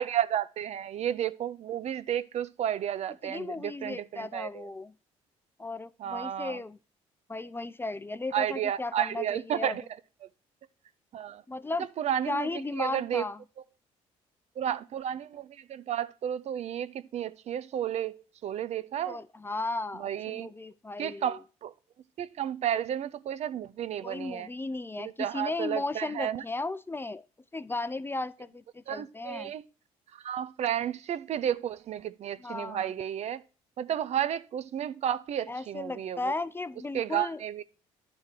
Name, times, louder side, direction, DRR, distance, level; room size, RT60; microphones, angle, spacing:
voice 1, 0.0-4.7 6.0-6.6 8.3-9.8 11.1-11.4 12.0-12.5 12.8-13.3 14.6-19.2 20.0-20.5 21.0-21.7 22.2-24.5 25.0-26.4 28.9-29.6 30.1-33.4 33.8-36.3 36.9-37.6, right 10 dB, 55° right, 0.5 m, -32 dB
voice 2, 3.2-4.9 5.6-6.8 7.3-9.8 11.5-11.9 12.3-13.4 19.1-21.4 24.0-27.2 27.5-29.5 32.4-32.9 35.5-37.4, left 2 dB, 15° left, 0.4 m, -35 dB
10.5 x 3.6 x 4.4 m
supercardioid pair, 65°, 14 cm